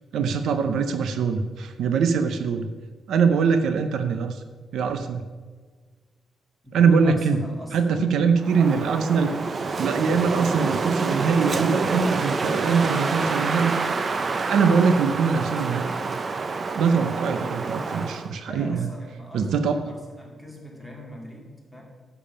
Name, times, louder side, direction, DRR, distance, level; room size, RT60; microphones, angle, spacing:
voice 1, 0.1-2.7 3.1-4.4 4.7-5.2 6.7-7.4 7.7-9.3 9.8-13.8 14.5-15.9 16.7-18.9 19.3-19.8, right 5 dB, 80° right, 9 dB, 0.6 m, -22 dB
voice 2, 6.6-8.2 18.5-19.5 19.9-21.8, left 1 dB, 5° right, -2 dB, 2.4 m, -41 dB
Wind, 8.4-18.3, right 4 dB, 35° right, 0.6 m, -27 dB
10.0 x 7.0 x 5.6 m, 1.5 s
cardioid pair, 130°, 0 cm